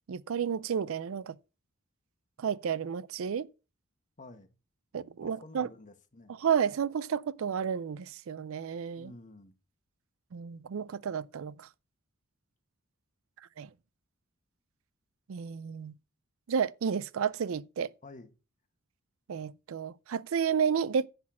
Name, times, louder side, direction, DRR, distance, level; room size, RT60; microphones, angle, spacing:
voice 1, 0.1-1.4 2.4-3.5 4.9-5.7 6.4-9.1 10.3-11.7 13.6-13.7 15.3-15.9 16.5-17.9 19.3-21.1, right 7 dB, 70° right, 0.4 m, -31 dB
voice 2, 4.2-4.5 5.2-6.4 9.0-9.5 18.0-18.3, left 2 dB, 35° left, 1.3 m, -50 dB
10.0 x 4.1 x 7.3 m
head